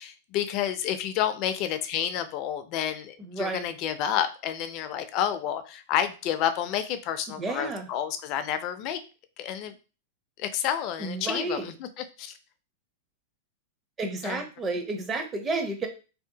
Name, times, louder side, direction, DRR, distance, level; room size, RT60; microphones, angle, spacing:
voice 1, 0.0-9.0 9.4-9.8 10.4-12.3 14.2-14.4, left 10 dB, 45° left, 10 dB, 0.4 m, -30 dB
voice 2, 3.2-3.7 7.4-7.9 11.0-11.7 14.0-15.9, right 3 dB, 20° right, 4 dB, 0.6 m, -31 dB
2.8 x 2.0 x 2.7 m, 0.33 s
hypercardioid pair, 130°, 0 cm